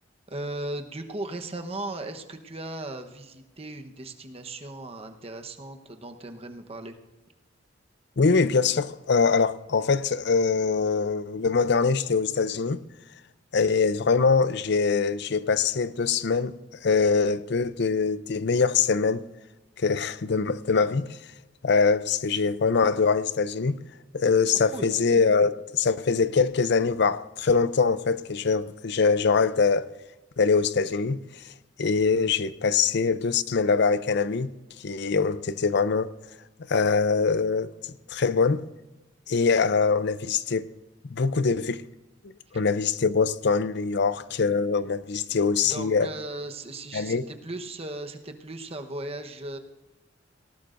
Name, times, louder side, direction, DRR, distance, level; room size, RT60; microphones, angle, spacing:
voice 1, 0.3-7.0 24.7-24.9 45.6-49.6, right 2 dB, 30° right, 1.1 m, -37 dB
voice 2, 8.2-12.8 13.5-19.2 19.8-21.1 21.6-23.8 24.1-29.9 30.4-31.2 31.8-34.5 34.8-36.1 36.7-37.7 38.1-38.6 39.3-40.7 41.1-41.8 42.5-46.1 46.9-47.2, left 5 dB, 65° left, 0.6 m, -23 dB
18.5 x 18.0 x 2.6 m
head